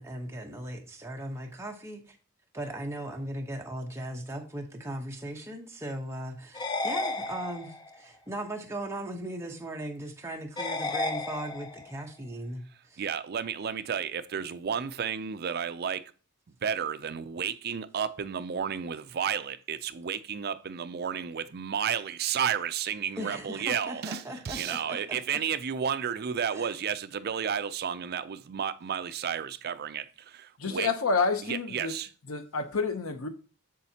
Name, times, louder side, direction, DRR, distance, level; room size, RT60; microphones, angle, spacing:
voice 1, 0.0-2.2 2.5-13.0 23.2-25.4 26.5-26.7, right 1 dB, 10° right, 1.0 m, -38 dB
sound 1, 6.5-8.0 10.6-12.0, left 2 dB, 20° left, 0.5 m, -33 dB
voice 2, 13.0-16.1 16.6-30.9 31.5-32.1, right 7 dB, 45° right, 0.4 m, -32 dB
voice 3, 30.6-31.9 32.3-33.3, left 4 dB, 70° left, 0.8 m, -28 dB
7.4 x 7.0 x 2.8 m
head